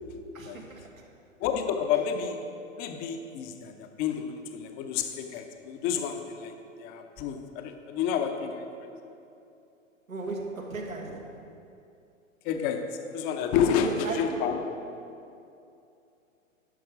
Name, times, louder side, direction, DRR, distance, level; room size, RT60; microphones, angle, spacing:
voice 1, 0.3-1.0 10.1-11.4 13.8-14.5, right 3 dB, 85° right, 1 dB, 1.5 m, -36 dB
voice 2, 1.4-2.4 2.7-8.7 12.4-14.7, left 7 dB, 25° left, 6 dB, 0.6 m, -30 dB
11.0 x 6.1 x 5.0 m, 2.7 s
figure-of-eight pair, 110°, 40 cm